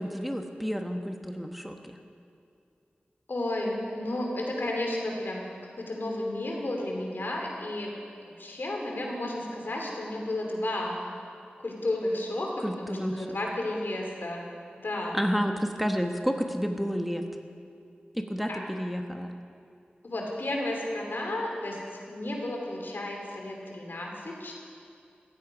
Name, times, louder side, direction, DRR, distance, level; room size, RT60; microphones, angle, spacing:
voice 1, 0.0-2.0 12.6-13.3 15.1-17.2 18.1-19.3, equal, ahead, 4 dB, 1.2 m, -30 dB
voice 2, 3.3-5.5 5.8-8.0 8.4-11.0 11.6-12.5 12.8-14.5 14.8-15.2 18.5-18.6 20.0-24.6, left 1 dB, 75° left, 0 dB, 3.1 m, -32 dB
16.0 x 15.0 x 5.2 m, 2.4 s
cardioid pair, 45°, 4 cm